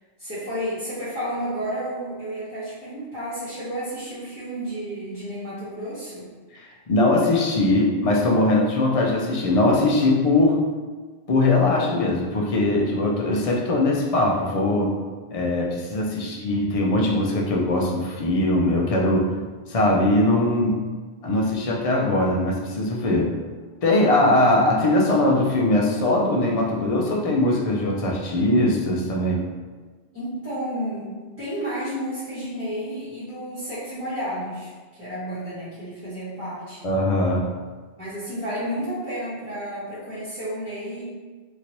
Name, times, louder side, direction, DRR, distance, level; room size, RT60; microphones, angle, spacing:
voice 1, 0.2-6.3 16.0-16.3 30.1-34.7 35.0-36.8 38.0-41.0, equal, 15° right, -14 dB, 1.0 m, -31 dB
voice 2, 6.9-10.6 11.3-14.9 15.3-19.3 19.7-20.8 21.2-23.3 23.8-29.4 36.8-37.4, left 2 dB, 50° left, -1 dB, 0.4 m, -21 dB
3.0 x 2.6 x 2.9 m, 1.4 s
omnidirectional pair, 1.1 m